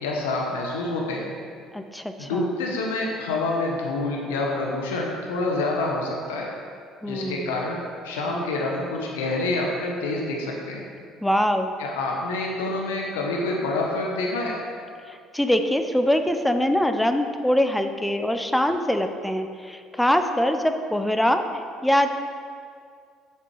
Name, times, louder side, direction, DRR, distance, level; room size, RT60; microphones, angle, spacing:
voice 1, 0.0-1.3 2.2-6.5 7.0-10.9 11.8-14.6, left 2 dB, 85° left, -1 dB, 1.1 m, -27 dB
voice 2, 1.7-2.5 7.0-7.6 11.2-11.7 15.1-22.2, equal, 5° left, 7 dB, 0.6 m, -23 dB
7.2 x 6.8 x 4.7 m, 2.2 s
hypercardioid pair, 60°, 0 cm